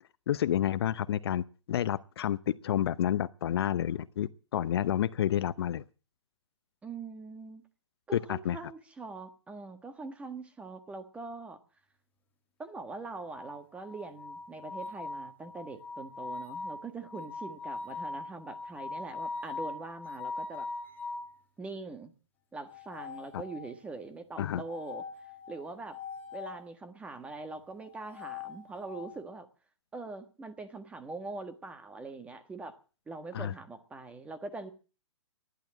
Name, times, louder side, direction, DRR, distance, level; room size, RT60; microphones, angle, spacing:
voice 1, 0.3-5.8 8.1-8.6 24.4-24.6 33.3-33.5, left 10 dB, 55° left, 0.8 m, -30 dB
voice 2, 6.8-7.6 8.1-11.6 12.6-20.7 21.6-22.1 22.5-25.0 25.5-26.0 26.3-29.5 29.9-32.8 33.1-34.7, right 3 dB, 10° right, 1.4 m, -43 dB
sound 1, 13.3-21.4 22.6-23.9 24.6-26.6 27.8-29.2, left 3 dB, 10° left, 1.9 m, -41 dB
15.0 x 11.5 x 7.5 m
hypercardioid pair, 150°, 16 cm